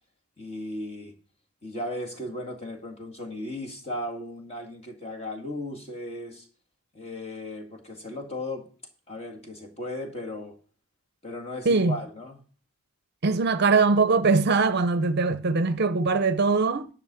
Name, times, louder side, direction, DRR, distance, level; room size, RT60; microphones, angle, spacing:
voice 1, 0.4-1.1 1.6-6.5 6.9-8.7 9.1-10.6 11.2-12.4, left 1 dB, 30° left, 2.0 m, -36 dB
voice 2, 11.7-12.0 13.2-16.9, right 4 dB, 45° right, 0.6 m, -22 dB
11.0 x 6.1 x 6.9 m
head